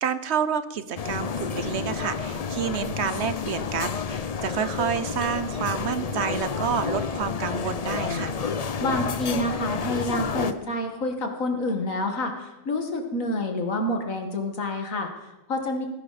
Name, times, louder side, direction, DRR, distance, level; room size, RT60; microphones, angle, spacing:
voice 1, 0.0-8.3, right 7 dB, 60° right, 13 dB, 0.9 m, -29 dB
sound 1, 1.0-10.5, left 5 dB, 45° left, 0.5 m, -30 dB
voice 2, 8.8-15.9, left 1 dB, 85° left, 4 dB, 2.2 m, -28 dB
17.5 x 11.5 x 4.1 m, 1.0 s
omnidirectional pair, 1.4 m